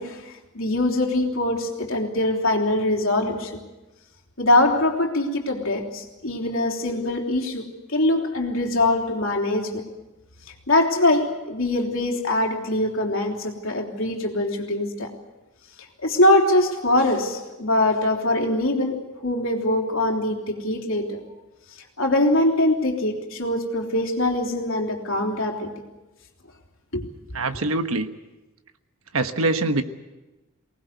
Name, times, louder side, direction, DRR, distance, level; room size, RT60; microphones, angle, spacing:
voice 1, 0.0-3.6 4.4-7.6 7.9-9.8 10.7-15.1 16.0-21.2 22.0-25.7 26.9-27.0, left 1 dB, 65° left, 3.4 m, -23 dB
voice 2, 27.3-28.1 29.1-29.8, right 2 dB, 75° right, 1.4 m, -23 dB
24.0 x 19.0 x 8.2 m
head